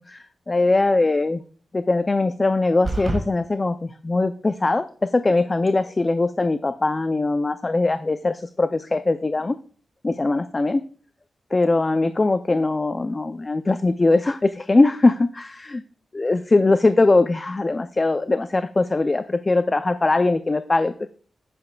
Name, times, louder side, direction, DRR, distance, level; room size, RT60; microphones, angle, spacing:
voice 1, 0.0-1.4 1.7-9.6 10.0-10.8 11.5-15.8 16.1-21.1, left 2 dB, 25° left, 10 dB, 0.4 m, -21 dB
sound 1, 2.8-3.2, right 2 dB, 25° right, 2.1 m, -25 dB
9.7 x 9.5 x 2.3 m, 0.43 s
wide cardioid pair, 130°, 0 cm